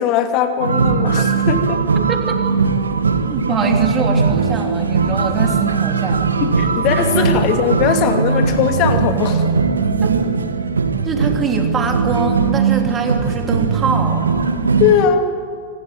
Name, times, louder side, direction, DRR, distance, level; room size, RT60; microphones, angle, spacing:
voice 1, 0.0-1.8 6.4-9.5 14.8-15.3, left 8 dB, 40° left, 6 dB, 2.6 m, -19 dB
sound 1, 0.6-15.1, right 5 dB, 75° right, 1.4 m, -19 dB
voice 2, 2.0-2.5 3.3-6.2 6.9-7.3 10.0-10.1 11.0-14.2, right 4 dB, 20° right, 3 dB, 3.3 m, -24 dB
26.0 x 18.0 x 9.3 m, 2.2 s
figure-of-eight pair, 90°, 0 cm